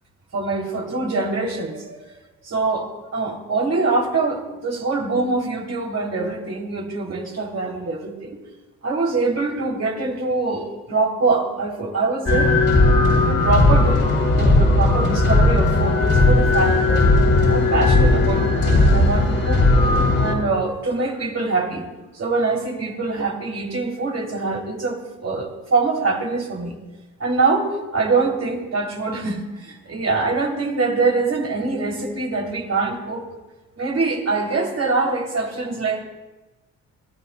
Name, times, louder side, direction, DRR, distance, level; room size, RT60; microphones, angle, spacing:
voice 1, 0.3-2.0 2.4-8.4 8.8-12.5 12.9-14.0 14.3-17.1 17.5-19.6 20.2-21.8 22.1-26.8 27.2-33.2 33.8-36.0, right 3 dB, 45° right, 0 dB, 3.3 m, -24 dB
sound 1, 12.3-20.3, left 2 dB, 45° left, 3.3 m, -16 dB
27.0 x 13.0 x 2.3 m, 1.1 s
supercardioid pair, 60°, 34 cm